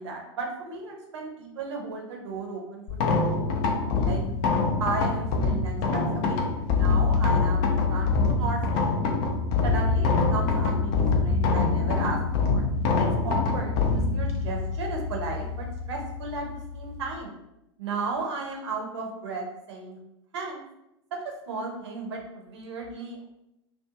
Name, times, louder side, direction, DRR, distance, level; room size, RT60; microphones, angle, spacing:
voice 1, 0.0-2.8 3.1-4.2 4.8-9.1 9.6-12.2 12.4-12.6 13.0-17.3 17.8-20.0 20.3-20.6 21.1-23.2, right 4 dB, 70° right, 1 dB, 0.7 m, -35 dB
sound 1, 2.9-17.1, left 4 dB, 45° left, 0.5 m, -25 dB
2.5 x 2.3 x 2.7 m, 0.86 s
hypercardioid pair, 95°, 15 cm